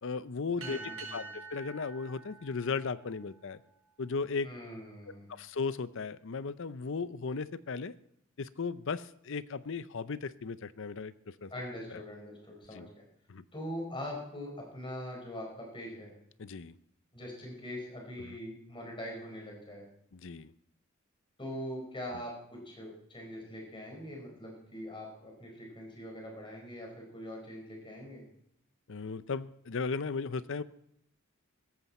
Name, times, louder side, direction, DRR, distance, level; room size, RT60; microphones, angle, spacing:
voice 1, 0.0-0.8 1.1-3.6 4.0-4.5 5.3-7.9 8.4-11.5 11.9-12.0 12.7-12.9 13.3-13.4 16.4-16.7 20.1-20.5 28.9-30.6, left 4 dB, 60° left, 15 dB, 0.6 m, -36 dB
voice 2, 0.6-1.2 4.4-5.3 11.5-13.0 13.5-16.1 17.1-19.8 21.4-28.2, equal, 25° left, 0 dB, 4.8 m, -42 dB
sound 1, 0.6-3.5, right 4 dB, 80° right, 4.9 m, -46 dB
16.5 x 14.0 x 4.3 m, 0.72 s
head